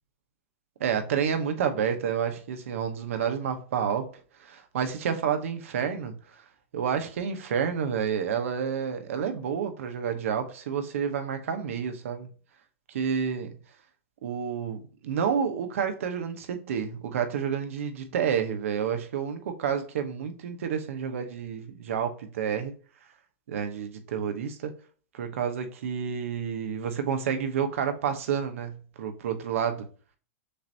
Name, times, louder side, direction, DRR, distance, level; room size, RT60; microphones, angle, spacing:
voice 1, 0.8-4.1 4.4-6.1 6.7-12.3 12.9-13.5 14.2-22.7 23.5-24.7 25.1-29.9, right 7 dB, 75° right, 1.0 m, -29 dB
6.6 x 2.6 x 2.8 m
supercardioid pair, 160°, 7 cm